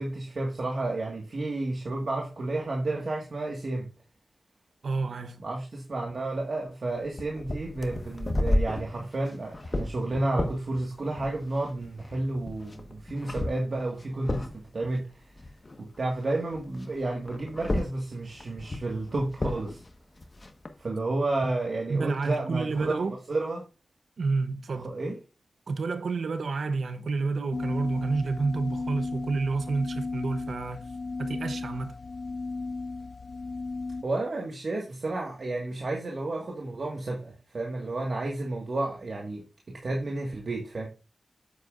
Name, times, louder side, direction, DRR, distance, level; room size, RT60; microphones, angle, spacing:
voice 1, 0.0-3.9 5.4-15.1 15.8-19.8 20.8-23.6 24.8-25.2 34.0-40.9, right 2 dB, 60° right, 1.7 m, -31 dB
voice 2, 4.8-5.4 21.9-23.1 24.2-24.9 25.7-30.9 31.2-31.9, right 4 dB, 85° right, 0.8 m, -29 dB
sound 1, 7.0-16.2 16.5-20.7, left 1 dB, 35° left, 1.3 m, -33 dB
sound 2, 27.5-34.0, left 3 dB, 55° left, 0.6 m, -35 dB
9.2 x 8.0 x 2.5 m
wide cardioid pair, 85°, 0 cm